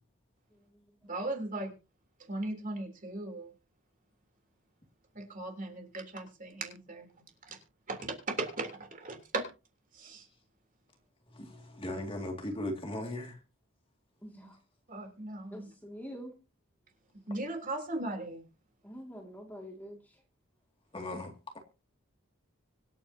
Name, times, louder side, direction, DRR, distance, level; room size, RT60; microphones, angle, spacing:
voice 1, 1.1-1.7 2.3-3.5 5.2-7.1 7.5-7.6 7.9-9.4 9.9-10.2 14.9-15.7 17.3-18.4, right 2 dB, 35° right, 3.4 m, -37 dB
voice 2, 11.8-13.3 20.9-21.3, left 1 dB, 25° left, 2.3 m, -36 dB
voice 3, 14.2-14.6 15.5-16.3 18.8-20.0, equal, 10° left, 2.3 m, -45 dB
25.0 x 9.2 x 2.9 m
head